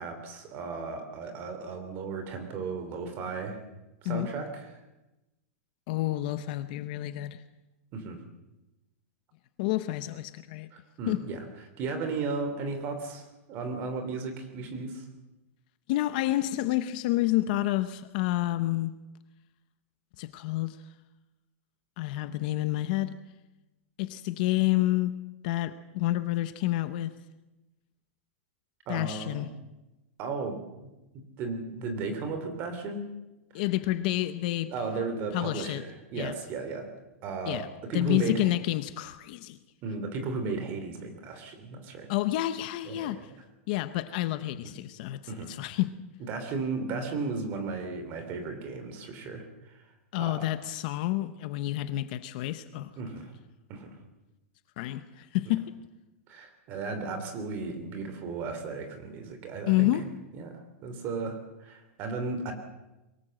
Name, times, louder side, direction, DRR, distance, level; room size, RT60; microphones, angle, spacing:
voice 1, 0.0-3.6 4.0-4.6 7.9-8.2 11.0-11.4 11.8-15.1 28.9-29.6 30.2-30.6 31.1-33.1 33.5-33.6 34.7-36.9 37.2-38.5 39.8-42.1 42.8-43.2 44.6-44.7 45.3-45.5 46.2-49.8 50.2-50.5 53.0-53.3 53.7-54.0 56.3-59.9 60.4-62.5, right 4 dB, 25° right, 3.0 m, -35 dB
voice 2, 5.9-7.4 9.6-10.7 11.1-11.2 15.9-18.9 20.2-20.8 22.0-23.2 24.0-25.2 25.4-27.1 28.9-29.5 33.5-34.7 35.3-35.8 36.1-36.3 37.5-39.6 42.1-43.3 43.7-46.1 50.1-52.9 54.8-55.8 59.7-60.1, left 16 dB, 35° left, 0.8 m, -29 dB
23.0 x 18.5 x 7.7 m
supercardioid pair, 180°, 8 cm